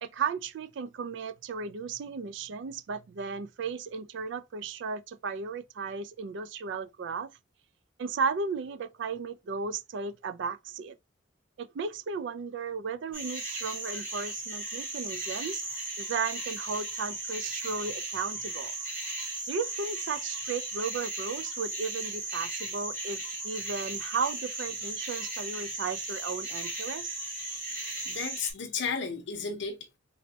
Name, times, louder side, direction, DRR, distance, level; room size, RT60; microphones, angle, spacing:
voice 1, 0.0-7.3 8.0-11.0 11.6-18.7 19.5-27.1, right 5 dB, 65° right, 0.4 m, -35 dB
sound 1, 13.1-28.5, right 2 dB, 45° right, 2.6 m, -36 dB
voice 2, 27.4-30.0, left 5 dB, 65° left, 0.6 m, -35 dB
4.1 x 3.2 x 2.7 m
head